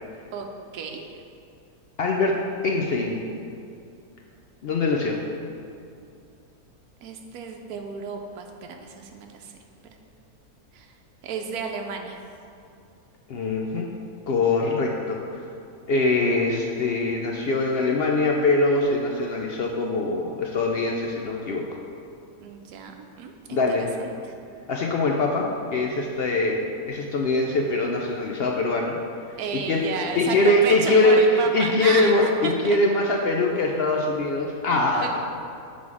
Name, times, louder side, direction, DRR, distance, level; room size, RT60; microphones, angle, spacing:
voice 1, 0.7-1.2 7.0-9.5 10.7-10.9 11.2-12.2 22.4-24.4 29.4-32.8 34.9-35.2, right 5 dB, 85° right, 3 dB, 1.1 m, -33 dB
voice 2, 2.0-2.3 2.6-3.2 4.6-5.2 13.3-13.9 14.3-15.4 15.9-21.7 23.5-23.9 24.7-25.5 25.7-29.0 29.5-29.8 30.1-35.2, left 2 dB, 70° left, 0 dB, 0.6 m, -22 dB
7.1 x 4.1 x 4.7 m, 2.5 s
omnidirectional pair, 1.5 m